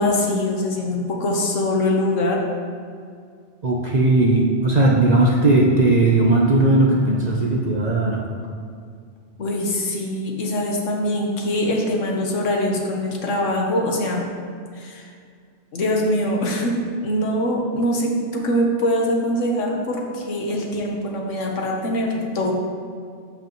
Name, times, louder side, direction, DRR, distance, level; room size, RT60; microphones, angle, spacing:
voice 1, 0.0-2.4 9.4-14.3 14.7-15.1 15.7-16.7 17.0-22.5, left 1 dB, 85° left, 0 dB, 1.5 m, -23 dB
voice 2, 3.6-8.2, right 2 dB, 40° right, -2 dB, 0.7 m, -17 dB
12.0 x 5.4 x 3.1 m, 2.2 s
omnidirectional pair, 1.2 m